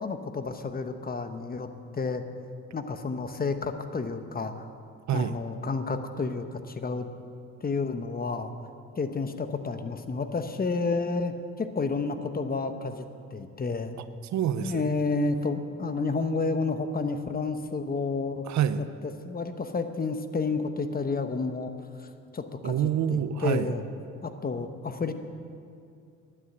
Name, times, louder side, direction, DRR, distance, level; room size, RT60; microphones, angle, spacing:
voice 1, 0.0-1.7 1.9-2.2 2.7-4.5 5.1-7.1 7.6-8.5 9.0-13.1 13.3-14.0 14.6-18.4 19.0-21.7 22.0-22.1 22.3-22.7 23.1-23.8 24.2-25.1, left 4 dB, 30° left, 9 dB, 1.0 m, -30 dB
voice 2, 14.0-14.9 18.4-18.8 22.6-23.7, right 9 dB, 70° right, 13 dB, 0.7 m, -27 dB
11.0 x 9.8 x 8.6 m, 2.4 s
cardioid pair, 90°, 30 cm